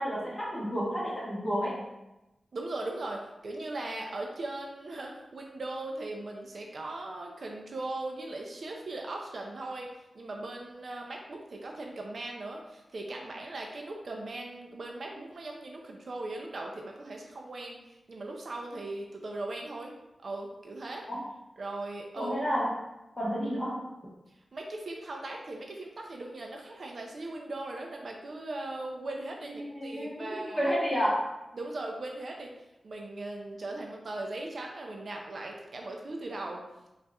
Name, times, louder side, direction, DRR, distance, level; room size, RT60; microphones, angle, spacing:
voice 1, 0.0-1.8 21.1-21.2 22.2-22.7 23.2-23.8 29.5-31.2, equal, 15° left, -6 dB, 1.1 m, -30 dB
voice 2, 2.5-19.9 20.2-21.1 21.6-22.3 24.5-30.8 31.5-32.5 32.8-36.9, right 2 dB, 55° right, 1 dB, 0.4 m, -39 dB
4.0 x 2.4 x 2.2 m, 0.96 s
wide cardioid pair, 125°, 0 cm